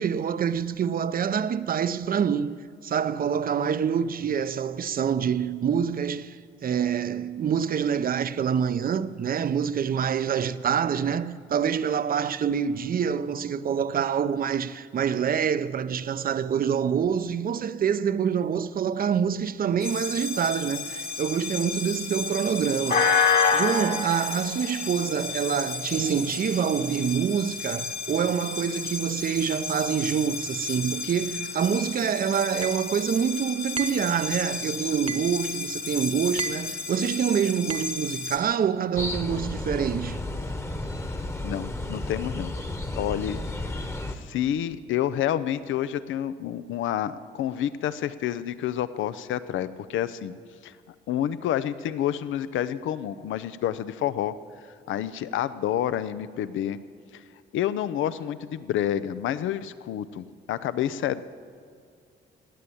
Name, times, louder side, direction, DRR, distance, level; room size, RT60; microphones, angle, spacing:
voice 1, 0.0-40.2, right 7 dB, 45° right, 0.7 m, -26 dB
sound 1, 19.8-38.4, left 5 dB, 50° left, 1.7 m, -30 dB
sound 2, 32.6-32.9 33.8-34.1 35.1-35.4 36.4-36.7 37.7-38.0, right 5 dB, 30° right, 1.1 m, -34 dB
sound 3, 39.0-44.2, left 2 dB, 15° left, 1.2 m, -32 dB
voice 2, 41.4-42.6 43.0-43.4 44.1-50.3 50.6-50.7 51.1-54.3 54.9-56.8 57.1-57.2 57.5-61.2, left 11 dB, 80° left, 0.7 m, -29 dB
17.0 x 9.8 x 8.6 m
cardioid pair, 90°, 20 cm